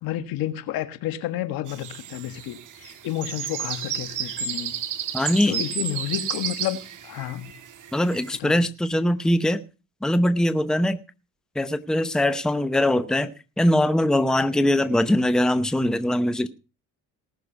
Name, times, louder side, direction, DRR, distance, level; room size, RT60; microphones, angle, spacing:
voice 1, 0.0-4.7 5.5-6.8 7.0-7.5 8.4-8.6, left 13 dB, 75° left, 1.6 m, -30 dB
sound 1, 1.7-8.4, right 9 dB, 60° right, 1.7 m, -32 dB
voice 2, 5.1-5.6 7.9-9.6 10.0-11.0 11.5-16.5, left 1 dB, ahead, 0.8 m, -22 dB
18.5 x 6.5 x 5.1 m
cardioid pair, 90°, 35 cm